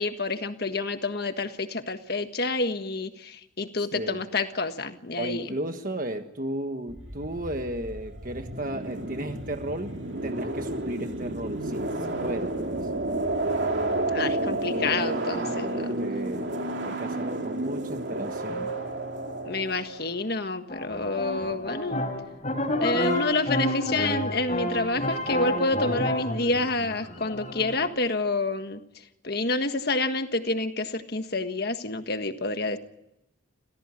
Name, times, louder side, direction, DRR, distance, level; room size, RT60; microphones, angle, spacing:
voice 1, 0.0-5.5 14.1-16.0 19.4-22.0 22.7-28.8 29.2-32.8, left 3 dB, 50° left, 8 dB, 1.6 m, -28 dB
voice 2, 5.2-9.9 10.2-12.9 16.0-18.7, right 1 dB, 45° right, 6 dB, 1.4 m, -34 dB
sound 1, 6.9-20.3, right 2 dB, 60° right, 2.7 m, -31 dB
sound 2, 20.7-27.9, left 1 dB, 35° left, 4.0 m, -30 dB
28.5 x 16.0 x 9.8 m, 0.87 s
head